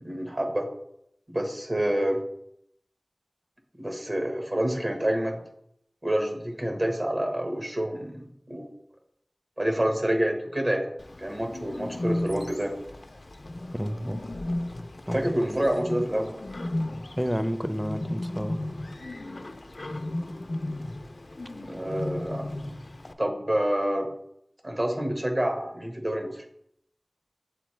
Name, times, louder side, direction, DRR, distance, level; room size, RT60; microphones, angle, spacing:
voice 1, 0.0-0.7 1.3-2.2 3.8-5.4 6.0-8.7 9.6-10.9 11.2-12.7 15.1-16.3 21.6-22.4 23.2-24.1 24.6-26.4, right 1 dB, 55° right, 3 dB, 1.1 m, -27 dB
Bird, 11.0-23.1, left 1 dB, 80° left, 0.4 m, -35 dB
voice 2, 13.7-14.2 15.1-15.3 17.1-18.6, equal, ahead, 9 dB, 0.4 m, -30 dB
8.0 x 3.8 x 3.2 m, 0.75 s
wide cardioid pair, 40°, 0 cm